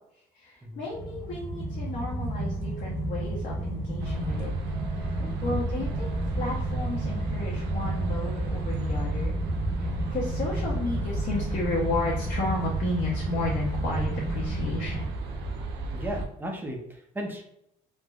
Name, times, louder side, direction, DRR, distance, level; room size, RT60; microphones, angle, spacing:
voice 1, 0.3-4.5 4.9-6.1 6.3-9.4 9.8-15.1, left 2 dB, 60° left, -4 dB, 0.7 m, -33 dB
sound 1, 0.9-15.1, right 1 dB, 15° left, 1.0 m, -32 dB
sound 2, 4.0-16.3, right 3 dB, 90° right, 0.4 m, -34 dB
voice 2, 15.9-17.4, right 1 dB, 10° right, 1 dB, 0.6 m, -35 dB
3.2 x 2.0 x 2.3 m, 0.76 s
cardioid pair, 110°, 17 cm